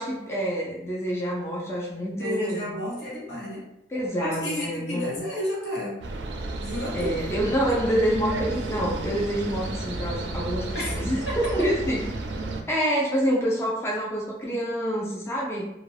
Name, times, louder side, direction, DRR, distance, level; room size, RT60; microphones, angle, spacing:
voice 1, 0.0-2.7 3.9-5.2 6.9-12.0 12.7-15.7, equal, 15° left, -4 dB, 0.4 m, -27 dB
voice 2, 2.1-3.7 4.2-6.0 6.6-7.2 7.7-7.8 10.7-11.5, equal, 80° left, -5 dB, 1.0 m, -32 dB
sound 1, 6.0-12.6, right 2 dB, 85° right, 0.4 m, -32 dB
2.4 x 2.2 x 3.2 m, 0.84 s
head